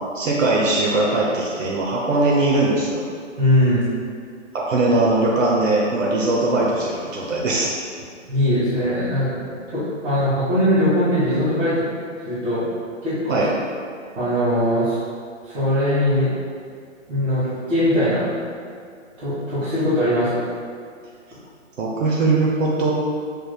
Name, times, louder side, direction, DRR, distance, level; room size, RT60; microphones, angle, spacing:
voice 1, 0.1-3.1 4.5-7.7 13.3-13.5 21.8-22.9, right 2 dB, 75° right, -4 dB, 0.8 m, -20 dB
voice 2, 3.4-3.8 8.3-11.8 12.2-12.7 13.0-13.4 14.1-15.0 15.4-16.3 17.1-18.3 19.2-20.4, left 1 dB, 55° right, -13 dB, 1.5 m, -20 dB
5.3 x 3.0 x 2.2 m, 2.2 s
hypercardioid pair, 150°, 39 cm